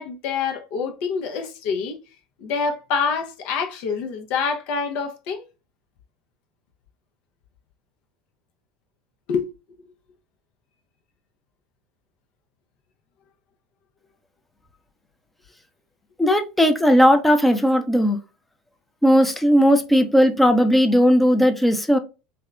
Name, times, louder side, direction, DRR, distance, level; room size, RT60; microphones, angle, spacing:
voice 1, 0.0-2.0 2.4-5.4 9.3-9.5, left 5 dB, 60° left, 0.6 m, -26 dB
voice 2, 16.2-18.2 19.0-22.0, equal, 5° left, 0.5 m, -17 dB
3.5 x 2.1 x 2.3 m
hypercardioid pair, 85°, 3 cm